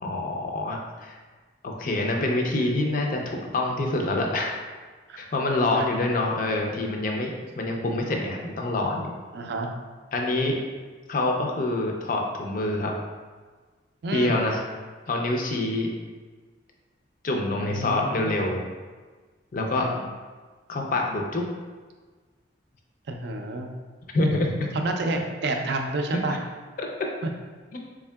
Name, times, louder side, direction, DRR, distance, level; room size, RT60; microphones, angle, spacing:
voice 1, 0.0-1.2 1.6-4.6 5.2-9.1 10.1-10.6 11.1-12.9 14.1-14.6 15.1-15.9 17.2-18.6 19.5-19.9 20.7-21.5 24.1-24.7 26.1-26.2 26.8-26.9 27.7-27.8, left 2 dB, 45° left, 1 dB, 0.4 m, -26 dB
voice 2, 9.3-9.7 14.0-14.4 17.6-18.5 19.7-20.0 23.1-23.7 24.7-26.4 27.2-27.3, right 2 dB, 60° right, 3 dB, 0.4 m, -29 dB
3.6 x 3.5 x 2.2 m, 1.4 s
head